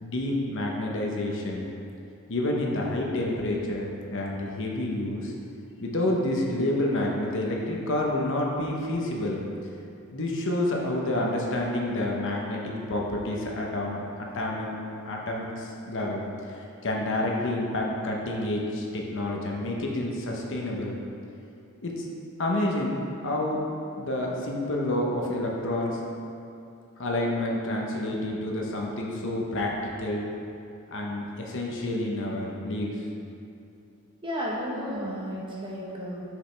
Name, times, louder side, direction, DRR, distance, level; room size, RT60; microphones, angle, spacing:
voice 1, 0.0-1.7 2.3-5.3 5.8-9.4 10.1-14.8 15.0-21.0 21.8-22.0 22.4-23.0 23.2-23.6 24.0-26.0 27.0-30.3 30.9-33.0, left 1 dB, 60° left, -1 dB, 0.9 m, -29 dB
voice 2, 34.2-36.2, equal, 25° right, -4 dB, 1.2 m, -33 dB
9.4 x 5.1 x 3.4 m, 2.7 s
head